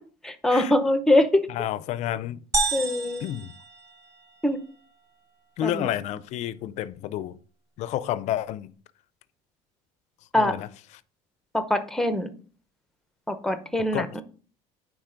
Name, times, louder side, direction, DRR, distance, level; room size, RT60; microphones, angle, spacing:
voice 1, 0.2-1.5 2.7-3.2 4.4-4.6 5.6-5.9 10.3-10.6 11.5-12.3 13.3-14.2, left 1 dB, 5° left, 0.7 m, -23 dB
voice 2, 1.5-2.4 3.2-3.5 5.6-7.4 7.8-8.7 10.4-10.7 13.9-14.2, left 12 dB, 50° left, 0.5 m, -30 dB
sound 1, 2.5-4.5, right 3 dB, 20° right, 1.0 m, -30 dB
9.5 x 3.9 x 3.8 m
cardioid pair, 140°, 15 cm